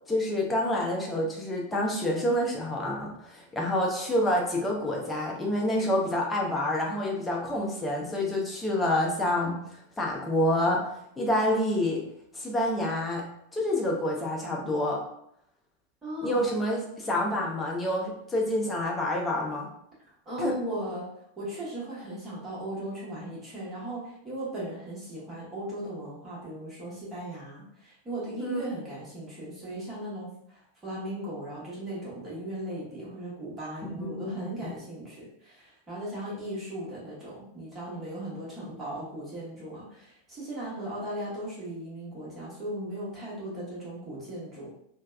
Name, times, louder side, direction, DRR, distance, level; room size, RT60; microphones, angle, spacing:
voice 1, 0.1-9.6 10.0-10.8 11.2-12.0 12.3-13.2 13.5-15.0 16.2-19.7 20.4-20.5 28.4-28.6 34.0-34.5, left 1 dB, 10° left, -2 dB, 0.7 m, -27 dB
voice 2, 16.0-16.5 20.2-21.1 21.4-44.7, right 1 dB, 20° right, -7 dB, 1.2 m, -37 dB
3.2 x 2.2 x 2.4 m, 0.73 s
figure-of-eight pair, 90°, 0 cm